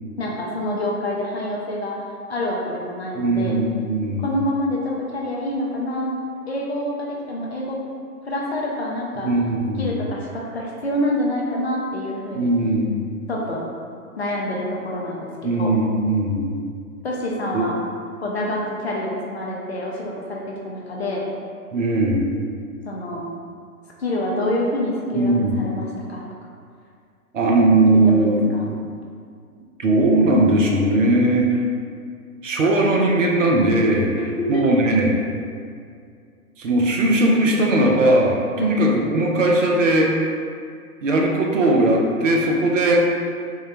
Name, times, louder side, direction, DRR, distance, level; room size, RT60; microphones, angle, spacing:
voice 1, 0.2-2.0 2.3-3.5 4.2-6.1 6.5-7.8 8.3-9.3 9.8-12.5 13.3-13.7 14.2-15.7 17.0-17.8 18.2-21.2 22.9-23.3 24.0-26.2 27.9-28.6 34.4-34.6 38.6-38.7, left 1 dB, 45° left, -2 dB, 0.5 m, -27 dB
voice 2, 3.2-4.3 9.2-10.0 12.3-13.0 15.4-16.6 17.5-17.7 21.7-22.3 25.1-25.6 27.3-28.9 29.8-31.6 32.4-35.2 36.6-40.1 41.0-43.0, right 1 dB, 55° right, 0 dB, 0.5 m, -19 dB
3.6 x 2.1 x 2.6 m, 2.2 s
figure-of-eight pair, 120°, 47 cm